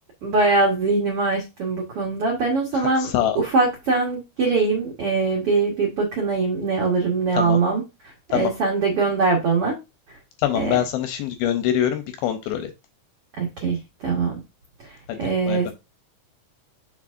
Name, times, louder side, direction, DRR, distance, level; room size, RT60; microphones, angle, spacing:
voice 1, 0.2-3.1 3.3-7.8 8.3-9.7 10.5-10.8 13.4-14.4 14.8-15.7, right 4 dB, 85° right, 0 dB, 1.2 m, -22 dB
voice 2, 2.7-3.4 7.4-7.6 8.3-8.5 10.4-12.7 15.1-15.2 15.5-15.7, left 11 dB, 75° left, 8 dB, 2.3 m, -24 dB
7.4 x 6.1 x 2.5 m, 0.25 s
omnidirectional pair, 4.9 m